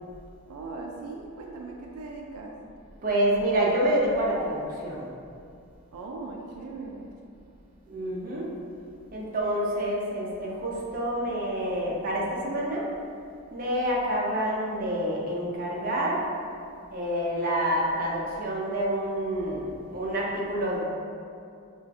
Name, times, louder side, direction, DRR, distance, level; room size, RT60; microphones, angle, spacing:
voice 1, 0.4-2.6 5.9-7.2, right 3 dB, 85° right, 0 dB, 0.3 m, -39 dB
voice 2, 3.0-5.0 7.9-8.5 9.1-12.9 13.5-16.2 16.9-20.8, right 1 dB, 40° right, -4 dB, 0.6 m, -27 dB
4.9 x 2.5 x 2.3 m, 2.4 s
head